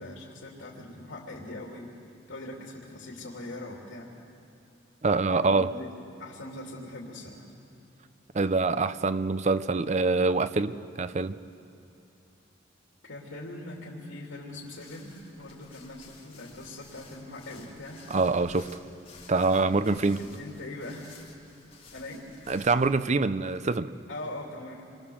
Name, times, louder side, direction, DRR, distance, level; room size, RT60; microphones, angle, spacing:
voice 1, 0.0-4.1 5.3-5.9 6.2-7.5 13.1-18.0 19.4-19.6 20.2-21.1 21.9-22.3 24.1-25.0, left 1 dB, 85° left, 3.0 m, -41 dB
voice 2, 5.0-5.7 8.3-11.4 18.1-18.7 19.3-20.2 22.5-23.9, right 3 dB, 35° right, 0.6 m, -25 dB
sound 1, 14.5-23.0, left 3 dB, 30° left, 2.8 m, -53 dB
27.5 x 23.5 x 7.2 m
head